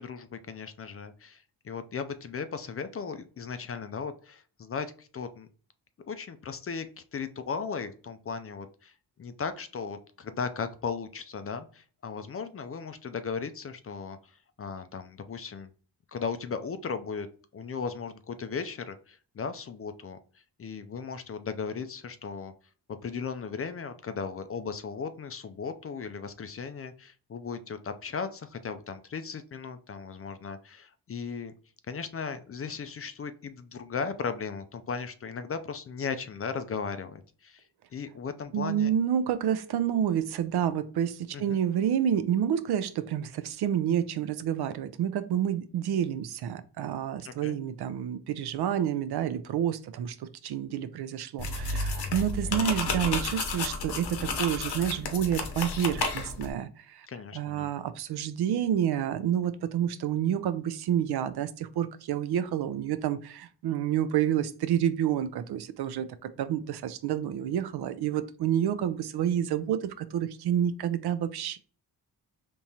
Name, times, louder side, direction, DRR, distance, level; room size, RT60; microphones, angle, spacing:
voice 1, 0.0-5.5 6.1-8.9 9.2-14.2 14.6-15.7 16.1-17.3 17.5-20.2 20.6-22.5 22.9-31.5 31.9-37.6 37.9-38.9 41.3-41.6 47.2-47.6 57.1-57.7, left 5 dB, 35° left, 0.4 m, -36 dB
voice 2, 38.5-57.1 57.3-71.6, right 9 dB, 70° right, 0.5 m, -29 dB
sound 1, 51.4-56.5, left 3 dB, 75° left, 0.9 m, -32 dB
3.6 x 3.0 x 2.7 m
cardioid pair, 100°, 41 cm